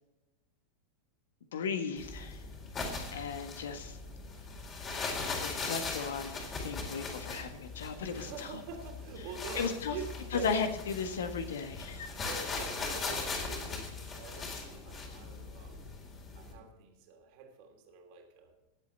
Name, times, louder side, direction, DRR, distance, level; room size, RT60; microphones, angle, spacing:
voice 1, 1.5-2.4 3.1-4.0 5.4-8.6 9.6-10.0 10.3-12.1, left 6 dB, 60° left, 8 dB, 1.5 m, -36 dB
sound 1, 2.0-16.5, left 4 dB, 25° left, 4.1 m, -40 dB
voice 2, 8.1-10.6 12.2-15.9 16.4-18.5, right 5 dB, 45° right, 3 dB, 3.0 m, -46 dB
19.5 x 8.4 x 4.1 m, 1.0 s
figure-of-eight pair, 90°, 0 cm